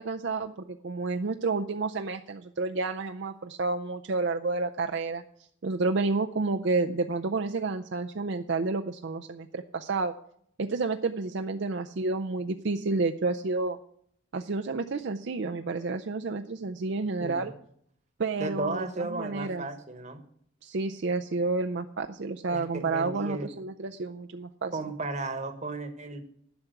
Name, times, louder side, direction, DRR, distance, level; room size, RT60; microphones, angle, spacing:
voice 1, 0.0-5.2 5.6-10.1 10.6-13.8 14.3-17.5 18.2-19.7 20.6-24.8, right 3 dB, 60° right, 5 dB, 0.5 m, -30 dB
voice 2, 18.4-20.2 22.5-23.5 24.7-26.2, right 2 dB, 35° right, 7 dB, 1.2 m, -34 dB
11.5 x 6.0 x 7.8 m, 0.67 s
head